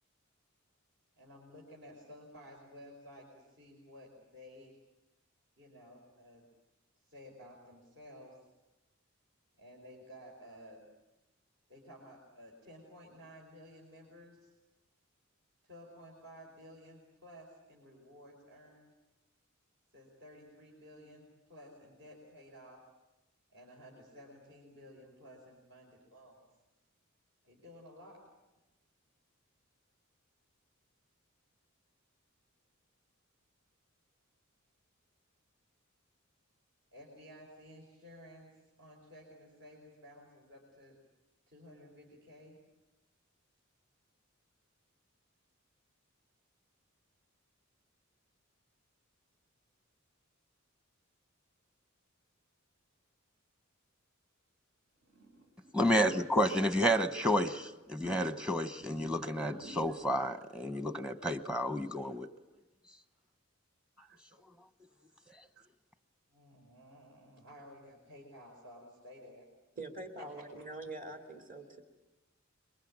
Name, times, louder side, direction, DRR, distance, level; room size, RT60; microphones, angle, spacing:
voice 1, 1.2-4.8 5.6-6.4 7.0-8.4 9.6-10.9 11.7-14.5 15.6-18.9 19.9-22.8 23.5-26.5 27.4-28.2 36.9-38.5 38.8-40.9 41.5-42.6 66.3-69.5, equal, 60° right, -2 dB, 5.2 m, -54 dB
Zipper (clothing), 55.0-56.6 57.9-58.4 58.8-59.9, right 1 dB, 80° right, 4.7 m, -50 dB
voice 2, 55.7-62.3, equal, 5° right, 10 dB, 1.0 m, -30 dB
voice 3, 69.8-71.8, right 2 dB, 40° right, 4 dB, 2.9 m, -44 dB
27.5 x 23.0 x 8.8 m, 1.0 s
head